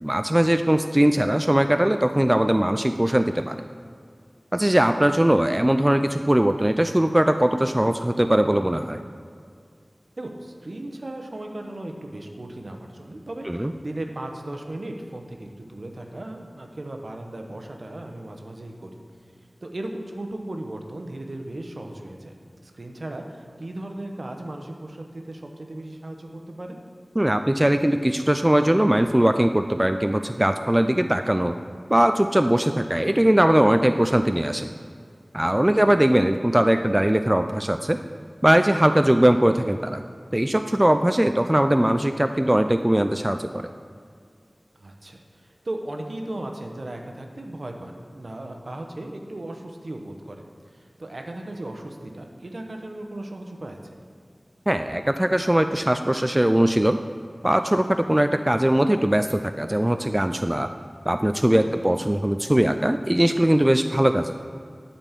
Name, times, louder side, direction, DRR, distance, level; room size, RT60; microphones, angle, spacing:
voice 1, 0.0-3.6 4.5-9.0 13.5-13.7 27.2-31.5 31.9-34.7 35.3-38.0 38.4-40.0 40.3-43.7 54.7-57.0 57.4-60.7 61.1-64.3, right 1 dB, 20° right, 7 dB, 0.3 m, -20 dB
voice 2, 10.2-18.9 19.6-26.8 35.5-35.8 44.8-50.4 50.7-53.9 61.6-61.8, right 1 dB, 70° right, 3 dB, 0.8 m, -36 dB
8.9 x 4.2 x 7.3 m, 2.1 s
wide cardioid pair, 40°, 0 cm